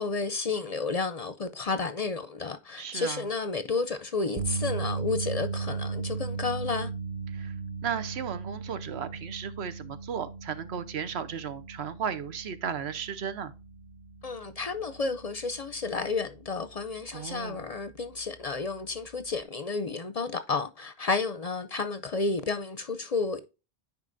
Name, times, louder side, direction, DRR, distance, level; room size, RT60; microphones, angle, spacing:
voice 1, 0.0-6.9 14.2-23.4, left 4 dB, 45° left, 0.6 m, -31 dB
voice 2, 2.8-3.2 7.3-7.5 7.8-13.5 17.1-17.6, right 7 dB, 85° right, 1.1 m, -35 dB
sound 1, 4.4-16.6 17.0-17.2 19.4-19.5, right 5 dB, 45° right, 0.8 m, -37 dB
9.7 x 4.8 x 2.5 m
omnidirectional pair, 1.1 m